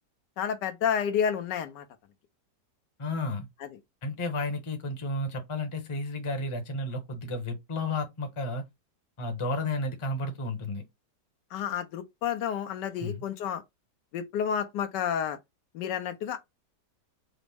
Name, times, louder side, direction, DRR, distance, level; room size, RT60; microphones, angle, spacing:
voice 1, 0.4-1.8 11.5-13.6 14.1-15.4 15.7-16.4, left 8 dB, 80° left, 1.3 m, -30 dB
voice 2, 3.0-3.5 4.0-8.6 9.2-10.8 13.0-13.2, left 2 dB, 25° left, 0.7 m, -32 dB
5.0 x 2.1 x 3.4 m
omnidirectional pair, 1.9 m